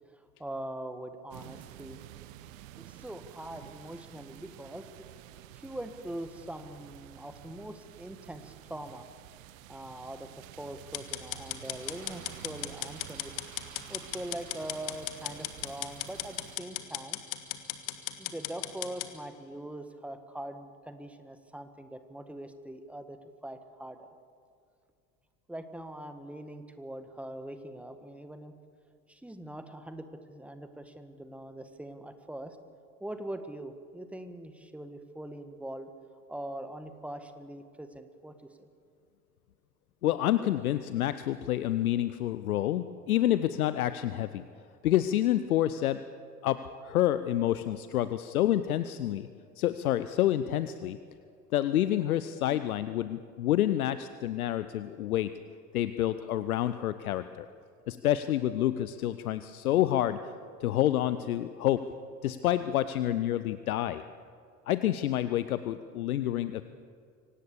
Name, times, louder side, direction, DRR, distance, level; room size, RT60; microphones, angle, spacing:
voice 1, 0.1-2.0 2.8-4.8 5.5-9.1 9.7-13.3 13.9-17.2 18.2-24.1 25.5-28.5 29.1-32.6 33.0-35.9 36.3-38.7, right 1 dB, 5° right, 9 dB, 1.7 m, -42 dB
sound 1, 1.3-16.6, right 14 dB, 55° right, 1.1 m, -50 dB
sound 2, 10.9-19.1, left 14 dB, 45° left, 1.7 m, -37 dB
voice 2, 40.0-44.4 44.8-46.0 46.4-49.3 49.6-51.0 51.5-55.3 55.7-57.5 57.9-60.2 60.6-61.9 62.2-64.0 64.7-66.6, left 13 dB, 65° left, 13 dB, 0.8 m, -28 dB
24.5 x 18.0 x 6.9 m, 2.4 s
figure-of-eight pair, 70°, 46 cm